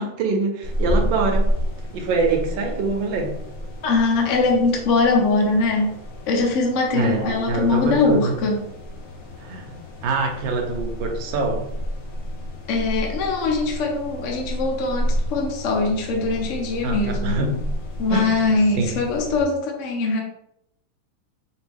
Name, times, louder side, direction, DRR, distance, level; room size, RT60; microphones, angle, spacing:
voice 1, 0.0-1.5 1.9-3.4 6.9-8.4 9.4-9.8 10.0-11.7 16.8-17.6 18.1-18.3 18.8-19.0, right 3 dB, 75° right, 3 dB, 1.4 m, -24 dB
sound 1, 0.6-19.4, equal, 45° left, 0.9 m, -30 dB
voice 2, 3.8-5.9 6.3-8.6 12.7-17.4 18.0-20.2, left 3 dB, 65° left, 1 dB, 0.7 m, -21 dB
4.4 x 2.7 x 3.4 m, 0.78 s
omnidirectional pair, 2.2 m